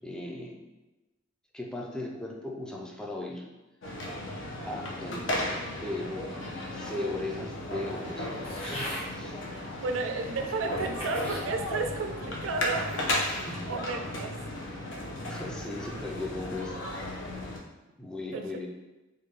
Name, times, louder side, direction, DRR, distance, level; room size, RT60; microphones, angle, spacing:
voice 1, 0.0-0.6 1.5-3.4 4.6-8.3 8.6-9.4 13.3-13.7 15.3-17.2 18.0-18.7, left 2 dB, 5° left, -1 dB, 0.4 m, -38 dB
sound 1, 3.8-17.6, left 1 dB, 65° left, 0.6 m, -35 dB
sound 2, 8.4-9.1 9.9-10.0 10.7-11.5 12.0-12.4, equal, 30° left, 1.2 m, -39 dB
voice 2, 9.5-14.4 18.3-18.5, right 3 dB, 75° right, 5 dB, 0.4 m, -33 dB
3.3 x 2.2 x 3.2 m, 1.1 s
head